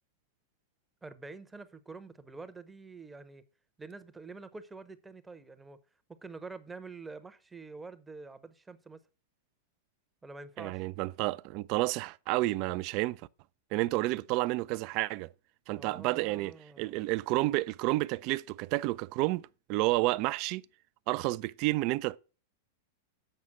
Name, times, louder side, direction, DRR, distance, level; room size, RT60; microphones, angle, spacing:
voice 1, 1.0-3.4 3.8-5.8 6.1-9.0 10.2-10.9 15.7-17.0, right 3 dB, 10° right, 0.8 m, -47 dB
voice 2, 10.6-13.2 13.7-15.3 15.7-19.4 19.7-20.6 21.1-22.2, right 19 dB, 45° right, 0.3 m, -30 dB
7.7 x 5.6 x 6.0 m
hypercardioid pair, 100°, 0 cm